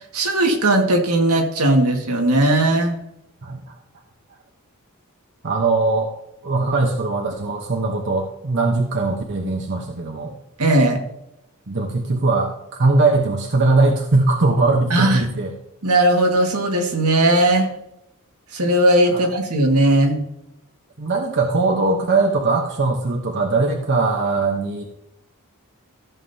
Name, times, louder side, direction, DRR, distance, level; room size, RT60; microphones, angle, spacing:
voice 1, 0.1-3.0 10.6-11.0 14.9-15.2 15.8-17.7 18.5-20.2, right 1 dB, 80° right, 3 dB, 1.9 m, -17 dB
voice 2, 5.4-6.1 6.4-10.3 11.7-12.5 12.8-15.5 19.1-19.2 21.0-24.8, right 3 dB, 55° right, 2 dB, 1.0 m, -20 dB
14.0 x 7.5 x 2.8 m, 0.82 s
head